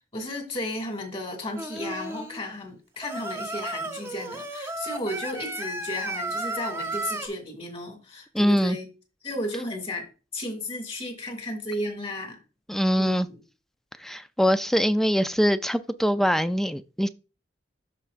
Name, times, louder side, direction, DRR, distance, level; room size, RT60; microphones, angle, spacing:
voice 1, 0.1-8.9 9.2-12.4 13.0-13.4, left 1 dB, 30° left, 2.3 m, -34 dB
Singing, 1.6-2.4 3.0-7.3, right 2 dB, 15° right, 0.8 m, -33 dB
voice 2, 8.3-8.8 12.7-13.3 14.0-17.1, equal, ahead, 0.3 m, -23 dB
13.5 x 4.7 x 2.5 m
head